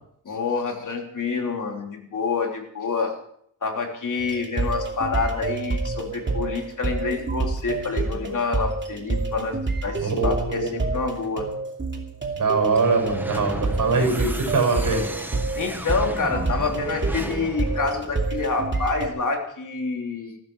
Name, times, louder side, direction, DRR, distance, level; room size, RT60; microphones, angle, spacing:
voice 1, 0.2-3.1 3.6-9.5 9.8-11.5 15.6-20.4, left 4 dB, 65° left, 2 dB, 3.3 m, -27 dB
sound 1, 4.2-19.1, right 3 dB, 35° right, 2.7 m, -28 dB
voice 2, 10.0-10.7 12.3-15.1, right 3 dB, 70° right, 3 dB, 6.7 m, -22 dB
sound 2, 12.6-18.9, right 1 dB, 5° right, 1.3 m, -36 dB
19.5 x 14.5 x 4.7 m, 0.67 s
wide cardioid pair, 165°, 33 cm